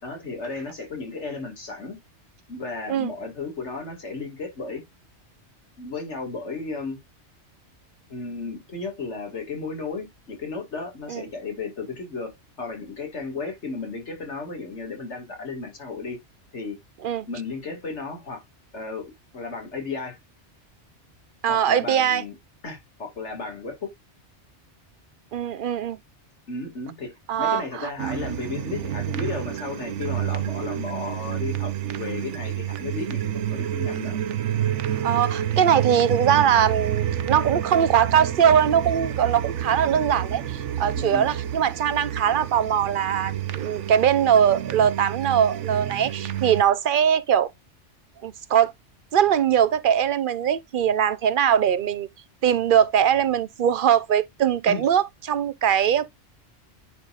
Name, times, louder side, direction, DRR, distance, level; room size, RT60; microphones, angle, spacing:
voice 1, 0.0-2.0 2.5-4.8 5.8-7.0 8.1-16.2 16.5-16.8 17.3-18.4 18.7-20.2 21.5-22.4 22.6-23.9 26.5-27.1 27.4-34.2 41.0-41.3 54.7-54.9, left 4 dB, 75° left, 2.5 m, -34 dB
voice 2, 21.4-22.2 25.3-26.0 27.3-27.9 35.0-47.5 48.2-48.7 49.1-52.1 52.4-56.1, right 9 dB, 55° right, 0.7 m, -21 dB
sound 1, 28.0-46.6, right 10 dB, 80° right, 1.1 m, -29 dB
9.8 x 4.0 x 2.4 m
omnidirectional pair, 1.2 m